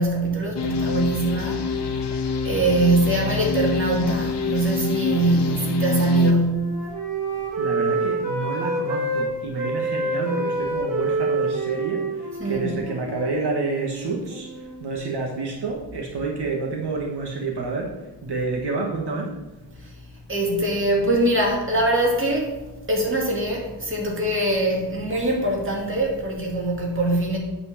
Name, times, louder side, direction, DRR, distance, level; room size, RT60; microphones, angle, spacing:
voice 1, 0.0-1.8 2.4-6.8 12.4-12.7 19.8-19.9 20.3-22.5 22.9-27.4, right 2 dB, 30° right, -2 dB, 2.2 m, -22 dB
sound 1, 0.6-6.3, left 5 dB, 75° left, 1.0 m, -27 dB
Wind instrument woodwind instrument, 4.4-9.3 9.5-14.9, right 3 dB, 50° right, 2.9 m, -28 dB
voice 2, 7.6-14.5 14.8-17.9 18.2-19.3, right 3 dB, 70° right, -1 dB, 1.4 m, -28 dB
8.5 x 4.5 x 7.1 m, 1.1 s
wide cardioid pair, 170°, 42 cm